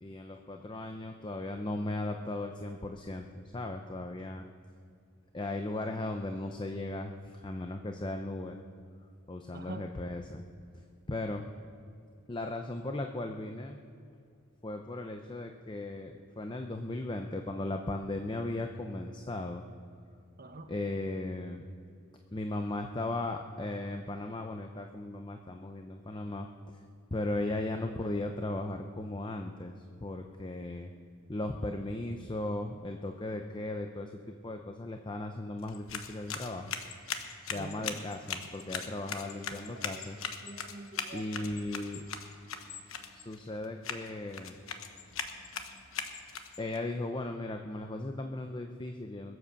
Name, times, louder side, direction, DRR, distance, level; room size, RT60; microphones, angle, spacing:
voice 1, 0.0-4.5 5.3-8.6 9.3-10.4 11.1-11.5 12.3-13.8 14.6-19.7 20.7-21.6 22.3-26.8 27.1-30.9 31.3-36.8 37.5-40.3 41.1-42.0 43.1-44.6 46.6-49.4, left 2 dB, 25° left, 4 dB, 0.6 m, -37 dB
voice 2, 9.5-9.9 20.4-20.7 37.5-38.0 38.5-41.6 42.7-42.8, right 2 dB, 45° right, 6 dB, 1.2 m, -47 dB
sound 1, 35.6-46.8, left 6 dB, 85° left, 1.1 m, -40 dB
22.0 x 8.0 x 7.0 m, 2.3 s
head